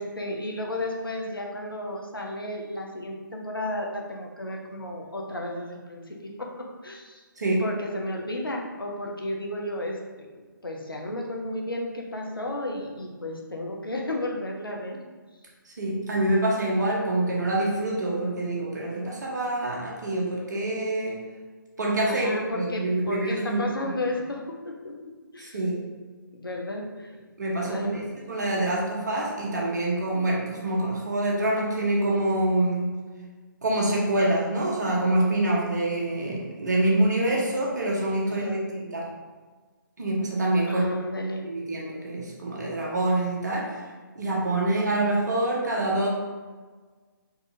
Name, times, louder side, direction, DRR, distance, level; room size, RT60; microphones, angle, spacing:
voice 1, 0.0-7.2 7.6-10.3 10.6-15.0 22.1-24.9 25.3-25.6 26.3-27.1 27.6-28.1 38.3-38.6 40.7-41.4, left 1 dB, 85° left, 0 dB, 0.7 m, -33 dB
voice 2, 15.8-21.2 21.8-23.9 25.4-25.8 27.4-33.0 33.6-38.6 38.9-39.1 40.0-40.8 41.4-43.8 44.1-46.1, right 1 dB, 55° right, -3 dB, 0.9 m, -26 dB
3.9 x 2.4 x 2.7 m, 1.4 s
figure-of-eight pair, 140°, 11 cm